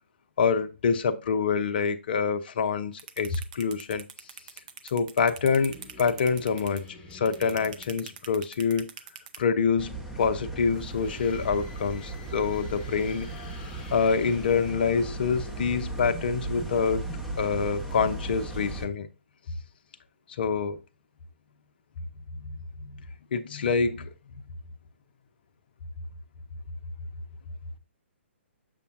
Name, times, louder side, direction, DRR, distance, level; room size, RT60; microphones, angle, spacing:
voice 1, 0.4-4.0 4.8-6.8 7.1-8.9 9.4-13.3 13.9-17.1 17.4-19.1 20.4-20.8 22.4-22.9 23.3-24.1, left 5 dB, 50° left, 0.8 m, -26 dB
sound 1, 3.0-9.4, right 8 dB, 40° right, 0.7 m, -42 dB
sound 2, 5.4-8.7 10.7-18.0, left 3 dB, 15° left, 1.2 m, -50 dB
sound 3, 9.8-18.9, right 2 dB, ahead, 0.9 m, -36 dB
6.8 x 6.8 x 2.6 m
figure-of-eight pair, 130°, 7 cm